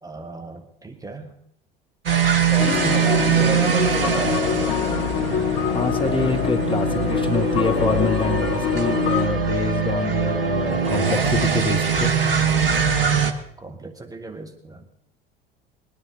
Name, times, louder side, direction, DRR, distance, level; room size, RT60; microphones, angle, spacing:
voice 1, 0.0-1.3 2.4-4.4 13.6-14.9, right 3 dB, 10° right, 3 dB, 1.2 m, -33 dB
sound 1, 2.1-13.3, right 6 dB, 70° right, 1.2 m, -22 dB
sound 2, 2.6-9.3, left 9 dB, 45° left, 0.8 m, -25 dB
voice 2, 5.6-12.1, left 3 dB, 15° left, 5 dB, 1.5 m, -26 dB
21.0 x 10.5 x 3.8 m, 0.72 s
figure-of-eight pair, 70°, 29 cm